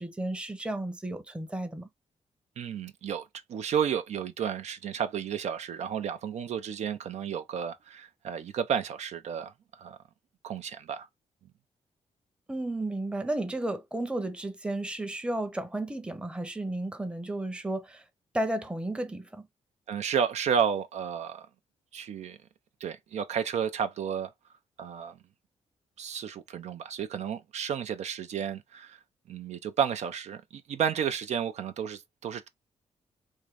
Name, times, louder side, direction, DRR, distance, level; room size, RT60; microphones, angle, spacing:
voice 1, 0.0-1.9 12.5-18.0 18.3-19.5, right 1 dB, 10° right, 0.7 m, -33 dB
voice 2, 2.6-10.0 10.4-11.1 19.9-21.5 21.9-22.4 22.8-24.3 24.8-25.2 26.0-29.0 29.3-32.5, right 8 dB, 70° right, 0.5 m, -32 dB
3.7 x 2.6 x 3.1 m
cardioid pair, 105°, 12 cm